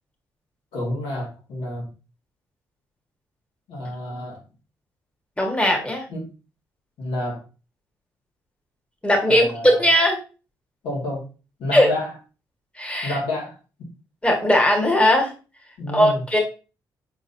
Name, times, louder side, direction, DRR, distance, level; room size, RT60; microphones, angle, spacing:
voice 1, 0.7-1.9 3.7-4.4 6.1-6.3 7.0-7.4 9.2-9.9 10.8-11.2 11.6-12.1 13.0-13.6 15.8-16.2, left 1 dB, 85° left, -3 dB, 2.1 m, -29 dB
voice 2, 5.4-6.0 9.0-10.2 11.7-11.9 12.8-13.2 14.2-15.3 15.9-16.4, equal, 15° left, 1 dB, 1.5 m, -18 dB
4.8 x 3.8 x 2.7 m, 0.33 s
supercardioid pair, 65°, 9 cm